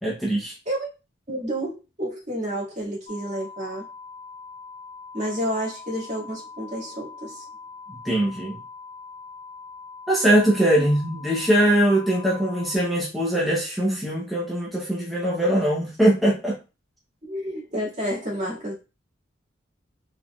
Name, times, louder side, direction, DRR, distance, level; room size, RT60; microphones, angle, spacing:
voice 1, 0.0-0.5 8.0-8.6 10.1-16.6, right 1 dB, ahead, -5 dB, 0.8 m, -21 dB
voice 2, 1.3-3.9 5.1-7.4 17.2-18.7, equal, 40° right, -4 dB, 2.0 m, -30 dB
sound 1, 3.1-12.8, left 4 dB, 40° left, 0.5 m, -42 dB
4.1 x 3.7 x 2.3 m, 0.29 s
head